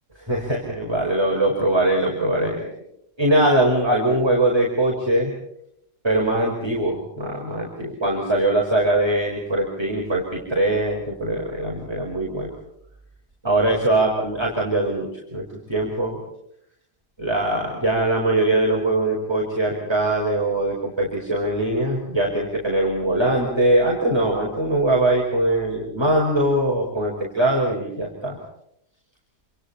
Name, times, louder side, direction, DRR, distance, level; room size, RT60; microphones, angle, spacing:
voice 1, 0.2-2.7 3.2-5.3 6.0-12.5 13.4-16.2 17.2-28.4, right 1 dB, 15° right, -2 dB, 5.4 m, -22 dB
28.5 x 28.0 x 4.4 m, 0.76 s
omnidirectional pair, 1.8 m